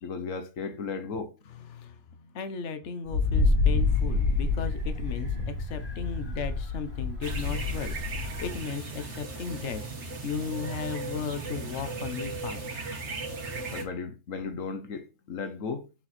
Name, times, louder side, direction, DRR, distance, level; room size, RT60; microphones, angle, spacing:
voice 1, 0.0-1.3 13.7-15.9, left 5 dB, 85° left, 1.3 m, -35 dB
voice 2, 1.5-12.6, left 6 dB, 65° left, 1.2 m, -36 dB
Wind, 3.1-8.6, left 3 dB, 40° left, 2.8 m, -27 dB
sound 1, 7.2-13.8, right 3 dB, 60° right, 1.8 m, -37 dB
7.7 x 4.5 x 4.2 m
omnidirectional pair, 1.3 m